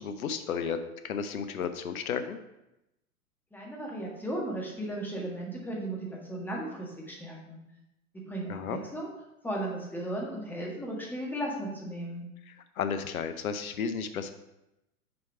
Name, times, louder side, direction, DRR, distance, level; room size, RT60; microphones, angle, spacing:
voice 1, 0.0-2.4 8.5-8.8 12.5-14.3, left 6 dB, 70° left, 10 dB, 0.8 m, -33 dB
voice 2, 3.5-7.6 8.3-9.1 9.4-12.2, right 1 dB, 5° left, -3 dB, 1.4 m, -36 dB
6.3 x 4.6 x 4.8 m, 0.91 s
figure-of-eight pair, 105°, 44 cm